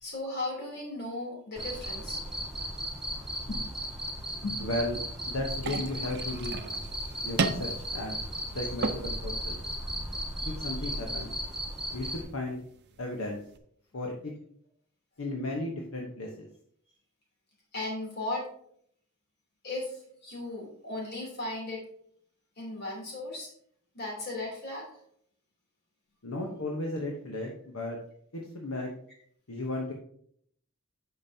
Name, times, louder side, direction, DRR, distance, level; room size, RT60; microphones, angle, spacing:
voice 1, 0.0-2.2 3.5-3.6 4.4-4.6 10.4-10.5 17.7-18.5 19.6-21.8 22.6-23.5 23.9-24.9, left 2 dB, 50° left, -2 dB, 3.0 m, -36 dB
Cricket, 1.6-12.2, equal, 5° right, 1.7 m, -36 dB
voice 2, 4.6-5.0 5.3-6.6 7.2-8.2 8.5-9.6 10.4-11.3 11.9-12.6 13.0-13.4 13.9-14.3 15.2-16.5 26.2-28.0 28.3-28.9 29.5-29.9, left 1 dB, 75° left, 0 dB, 1.0 m, -35 dB
sound 1, 5.6-13.6, right 4 dB, 55° right, 0.6 m, -37 dB
9.0 x 6.0 x 2.7 m, 0.65 s
head